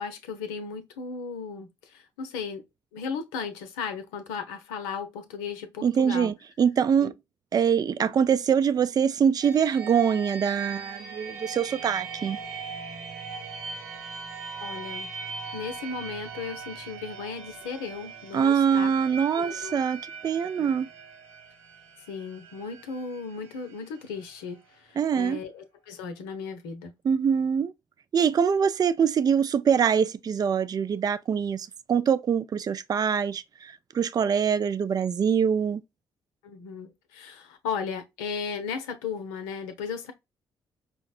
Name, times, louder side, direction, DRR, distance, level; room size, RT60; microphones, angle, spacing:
voice 1, 0.0-2.6 2.9-6.3 7.0-7.1 8.0-8.1 14.6-15.1 15.5-18.9 19.4-19.8 20.6-20.7 22.1-26.9 36.4-40.1, left 5 dB, 85° left, 0.6 m, -36 dB
voice 2, 5.8-7.1 7.5-12.4 18.3-20.9 25.0-25.4 27.0-27.7 28.1-35.8, right 7 dB, 40° right, 0.4 m, -24 dB
sound 1, 9.4-25.0, right 5 dB, 90° right, 0.7 m, -40 dB
4.9 x 2.0 x 2.4 m
hypercardioid pair, 45°, 10 cm